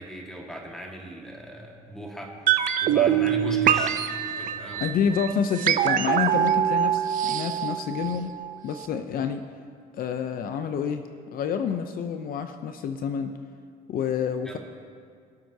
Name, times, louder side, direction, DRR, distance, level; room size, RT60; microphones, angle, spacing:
voice 1, 0.0-4.9 14.4-14.6, equal, 5° left, -1 dB, 1.7 m, -38 dB
sound 1, 2.5-8.5 8.8-8.9, right 10 dB, 55° right, 0.5 m, -24 dB
voice 2, 4.8-8.3 8.6-9.4 10.0-11.0 11.3-13.3 13.9-14.6, left 7 dB, 60° left, 8 dB, 0.6 m, -28 dB
22.0 x 7.7 x 2.8 m, 2.2 s
cardioid pair, 110°, 17 cm